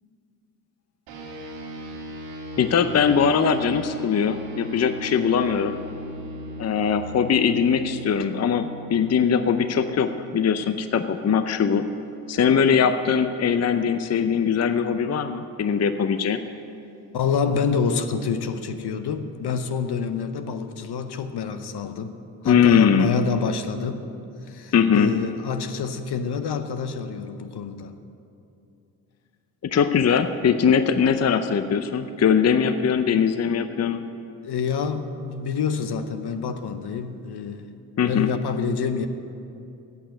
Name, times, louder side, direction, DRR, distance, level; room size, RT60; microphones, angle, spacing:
sound 1, 1.1-10.8, equal, 90° right, 1.7 m, -37 dB
voice 1, 2.6-5.7 6.6-11.8 12.3-16.4 22.4-23.1 24.7-25.1 29.6-34.0 38.0-38.3, left 7 dB, 35° left, 10 dB, 0.6 m, -21 dB
voice 2, 17.1-22.1 22.4-24.0 24.4-27.9 34.4-37.6 38.0-39.1, left 6 dB, 60° left, 9 dB, 0.9 m, -27 dB
8.4 x 8.1 x 9.1 m, 2.7 s
supercardioid pair, 50°, 44 cm